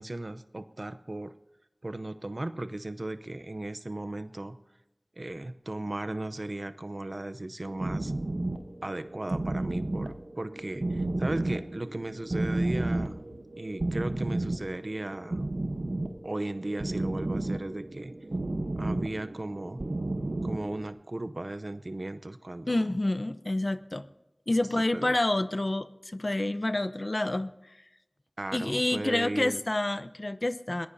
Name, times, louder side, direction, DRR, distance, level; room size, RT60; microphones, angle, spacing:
voice 1, 0.0-1.4 1.8-4.6 5.2-8.1 8.8-13.1 13.6-15.4 16.2-18.1 18.8-19.8 20.4-23.0 24.9-25.1 28.4-29.6, right 2 dB, 60° right, 12 dB, 0.7 m, -36 dB
sound 1, 7.7-20.9, right 2 dB, 80° right, 1.0 m, -32 dB
voice 2, 22.7-24.1 24.5-27.6 28.5-30.9, left 1 dB, 55° left, 12 dB, 0.7 m, -28 dB
22.0 x 20.0 x 2.7 m, 0.96 s
wide cardioid pair, 40°, 0 cm